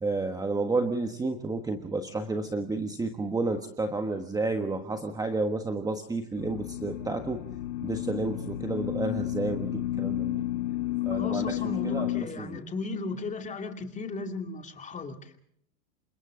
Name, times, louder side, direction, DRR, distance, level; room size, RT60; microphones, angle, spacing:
voice 1, 0.0-7.4 7.8-10.5 11.0-12.6, right 3 dB, 10° right, 6 dB, 1.4 m, -31 dB
sound 1, 6.4-12.2, left 14 dB, 60° left, 1.6 m, -31 dB
voice 2, 11.1-15.3, left 3 dB, 15° left, 5 dB, 2.5 m, -36 dB
29.0 x 26.0 x 3.8 m, 0.70 s
hypercardioid pair, 135°, 46 cm